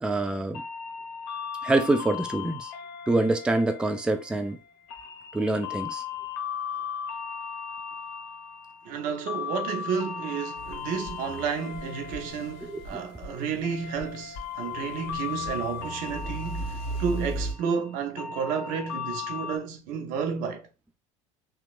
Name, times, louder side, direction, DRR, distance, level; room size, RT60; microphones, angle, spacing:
voice 1, 0.0-0.6 1.6-2.7 3.1-4.6 5.3-6.0 12.7-12.8, right 2 dB, 5° right, 0.3 m, -25 dB
sound 1, 0.5-19.6, left 7 dB, 65° left, 0.7 m, -37 dB
voice 2, 8.8-20.7, right 6 dB, 60° right, 0.6 m, -31 dB
sound 2, 10.6-13.5 13.9-17.5, right 2 dB, 35° left, 1.4 m, -37 dB
2.9 x 2.3 x 2.4 m
hypercardioid pair, 75°, 16 cm